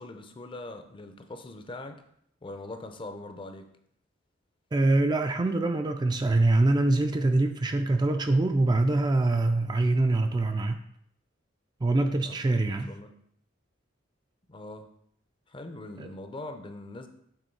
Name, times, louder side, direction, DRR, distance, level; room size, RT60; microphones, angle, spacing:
voice 1, 0.0-2.0 2.4-3.7 12.3-13.2 14.5-14.9 15.5-17.1, left 2 dB, 25° left, 7 dB, 0.5 m, -42 dB
voice 2, 4.7-10.8 11.8-12.9 16.0-16.1, right 2 dB, 20° right, 7 dB, 0.3 m, -24 dB
7.7 x 3.5 x 4.5 m, 0.69 s
head